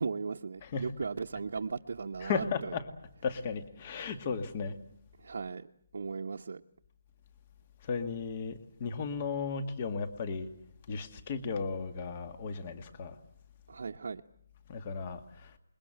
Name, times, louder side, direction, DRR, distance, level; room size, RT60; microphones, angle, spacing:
voice 1, 0.0-2.7 5.2-5.7 5.9-6.6 13.7-14.2, right 5 dB, 70° right, 1.1 m, -37 dB
voice 2, 0.6-0.9 2.2-2.9 3.2-4.8 7.8-10.5 10.9-13.2 14.7-15.6, left 5 dB, 30° left, 2.1 m, -35 dB
28.0 x 22.0 x 7.7 m
hypercardioid pair, 170°, 0 cm